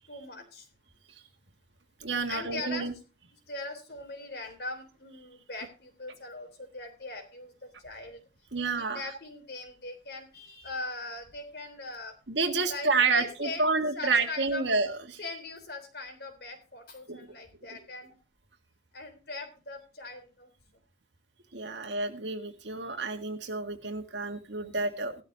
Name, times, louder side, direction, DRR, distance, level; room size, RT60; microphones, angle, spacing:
voice 1, 0.1-0.7 2.3-2.9 3.5-8.2 8.6-12.1 12.7-12.9 13.2-13.6 13.9-14.6 15.2-18.1 18.9-20.5, left 2 dB, 60° left, 4 dB, 3.6 m, -40 dB
voice 2, 2.0-2.9 8.5-9.0 12.3-15.2 17.1-17.2 21.5-25.2, right 3 dB, 75° right, 4 dB, 1.7 m, -29 dB
17.0 x 12.5 x 2.7 m, 0.30 s
head